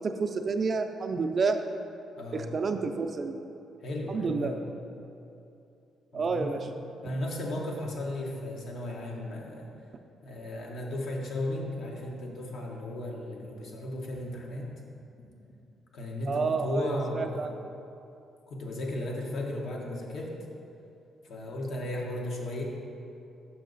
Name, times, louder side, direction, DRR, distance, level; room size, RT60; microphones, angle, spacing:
voice 1, 0.0-1.6 2.3-3.4 4.1-4.5 6.1-6.7 16.3-17.5, right 4 dB, 40° right, 6 dB, 0.4 m, -29 dB
voice 2, 2.2-2.5 3.8-4.7 6.1-6.6 7.0-9.7 10.2-14.7 15.2-15.3 15.9-17.5 18.5-20.3 21.2-22.6, left 1 dB, 70° left, -1 dB, 1.1 m, -35 dB
6.3 x 5.4 x 3.9 m, 2.7 s
cardioid pair, 90°, 0 cm